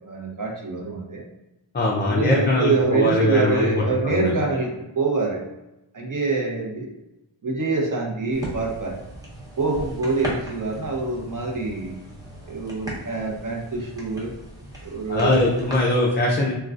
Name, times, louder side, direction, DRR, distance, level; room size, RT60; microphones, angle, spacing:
voice 1, 0.0-1.3 2.1-5.4 5.9-6.9 7.4-9.0 9.6-12.0 12.5-14.3 14.8-15.5, right 3 dB, 40° right, -1 dB, 0.8 m, -25 dB
voice 2, 1.7-4.3 15.1-16.5, left 1 dB, 25° left, -3 dB, 0.4 m, -21 dB
sound 1, 8.3-15.8, right 1 dB, 10° right, 0.8 m, -37 dB
3.6 x 2.3 x 2.4 m, 0.94 s
wide cardioid pair, 100°, 49 cm